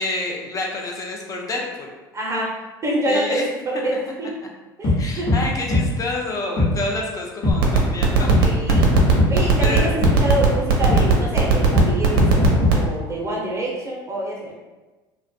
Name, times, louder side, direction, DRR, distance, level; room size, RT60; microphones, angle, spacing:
voice 1, 0.0-1.9 3.1-3.5 5.0-8.3 9.6-9.9, left 2 dB, 30° left, 0 dB, 0.6 m, -28 dB
voice 2, 2.1-2.5 2.8-4.3 4.8-5.3 8.4-8.9 9.3-14.5, right 1 dB, 25° right, -3 dB, 0.6 m, -26 dB
sound 1, 4.8-5.0 5.3-5.4 5.7-5.8 6.6-6.7 7.4-7.6 8.3-8.4 8.7-9.3 10.0-10.1 10.9-11.0 11.7-11.9 12.2-12.7, left 2 dB, 50° left, 1.0 m, -18 dB
sound 2, 7.5-12.9, right 8 dB, 75° right, 0.5 m, -16 dB
2.4 x 2.2 x 2.6 m, 1.2 s
hypercardioid pair, 75°, 12 cm